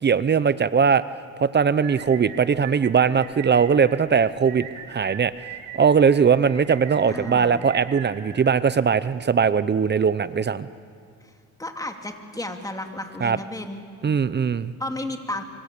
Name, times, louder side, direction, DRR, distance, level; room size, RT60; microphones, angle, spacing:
voice 1, 0.0-1.0 1.4-10.7 13.2-13.4 14.0-14.7, right 6 dB, 35° right, 15 dB, 0.8 m, -20 dB
sound 1, 1.8-9.2, right 8 dB, 90° right, 2.5 m, -41 dB
voice 2, 7.1-7.6 11.2-11.3 11.6-13.8 14.8-15.4, left 1 dB, 10° left, 4 dB, 2.7 m, -33 dB
25.5 x 24.5 x 8.4 m, 2.2 s
cardioid pair, 90°, 30 cm